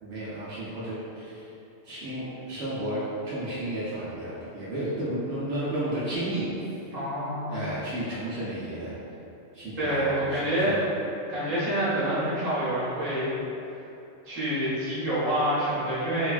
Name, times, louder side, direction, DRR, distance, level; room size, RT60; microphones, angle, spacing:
voice 1, 0.0-1.4 1.9-6.5 7.5-8.9 9.5-10.8, right 1 dB, 75° right, -10 dB, 0.9 m, -32 dB
voice 2, 6.9-7.6 9.8-10.8 11.3-13.4 14.2-16.3, right 1 dB, 35° right, -11 dB, 1.0 m, -27 dB
3.1 x 2.2 x 2.4 m, 2.8 s
omnidirectional pair, 1.2 m